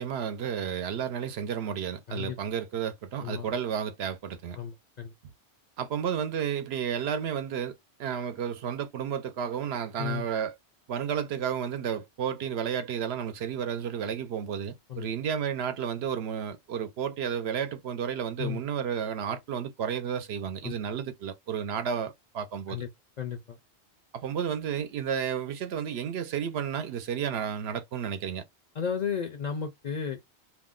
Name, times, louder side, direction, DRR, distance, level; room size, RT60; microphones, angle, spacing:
voice 1, 0.0-4.6 5.8-7.7 8.0-10.5 10.9-22.8 24.1-28.4, right 8 dB, 70° right, 0.8 m, -32 dB
voice 2, 4.6-5.1 10.0-10.2 14.9-15.1 18.4-18.6 20.6-20.7 22.7-22.9 23.2-23.6 28.8-30.2, left 7 dB, 55° left, 0.5 m, -33 dB
2.5 x 2.1 x 3.6 m
omnidirectional pair, 1.1 m